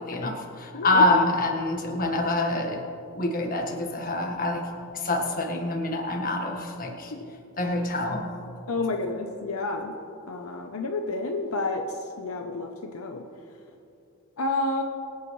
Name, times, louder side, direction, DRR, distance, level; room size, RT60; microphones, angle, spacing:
voice 1, 0.0-2.8 3.1-4.6 4.9-7.1 7.6-8.2, left 2 dB, 40° left, 2 dB, 1.5 m, -26 dB
voice 2, 0.7-1.0 7.1-7.2 8.7-9.9 10.3-11.8 12.2-13.2 14.4-14.8, left 3 dB, 75° left, 3 dB, 0.8 m, -30 dB
24.5 x 8.3 x 3.2 m, 2.6 s
head